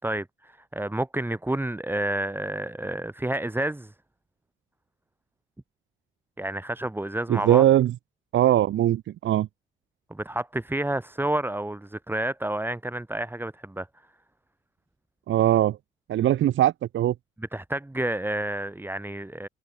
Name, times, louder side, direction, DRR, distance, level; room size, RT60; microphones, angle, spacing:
voice 1, 0.0-3.9 6.4-7.6 10.1-13.9 17.5-19.5, right 1 dB, 10° right, 4.5 m, -30 dB
voice 2, 7.3-7.9 8.3-9.5 15.3-15.8 16.1-17.1, right 12 dB, 75° right, 2.5 m, -21 dB
cardioid pair, 90°, 20 cm